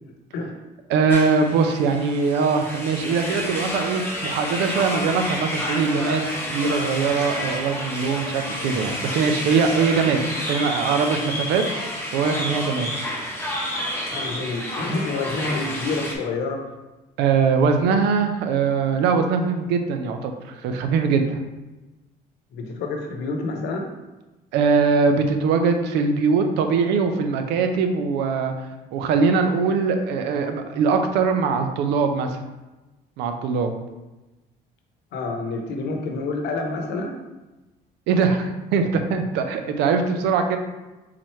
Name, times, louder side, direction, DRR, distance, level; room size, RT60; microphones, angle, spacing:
voice 1, 0.9-10.2 10.5-11.6 12.1-12.9 17.2-21.4 24.5-28.5 28.9-32.4 33.2-33.7 38.1-40.6, right 5 dB, 90° right, 6 dB, 0.6 m, -21 dB
sound 1, 1.1-16.1, left 1 dB, 15° left, 1.1 m, -30 dB
voice 2, 14.1-16.6 22.5-23.9 35.1-37.1, left 3 dB, 80° left, 3 dB, 0.8 m, -28 dB
4.3 x 3.9 x 3.2 m, 1.1 s
cardioid pair, 110°, 17 cm